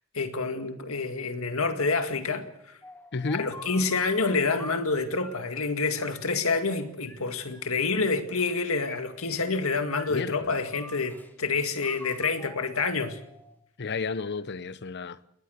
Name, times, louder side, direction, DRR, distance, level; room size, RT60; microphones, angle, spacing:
voice 1, 0.1-2.8 3.3-13.2, left 4 dB, 70° left, 2.1 m, -28 dB
sound 1, 2.8-5.6 6.0-7.8 8.5-9.6 9.9-11.3 11.8-13.6, left 1 dB, 10° left, 1.6 m, -47 dB
voice 2, 3.1-3.5 10.1-10.5 13.8-15.2, left 4 dB, 55° left, 0.8 m, -32 dB
21.5 x 19.5 x 6.7 m
head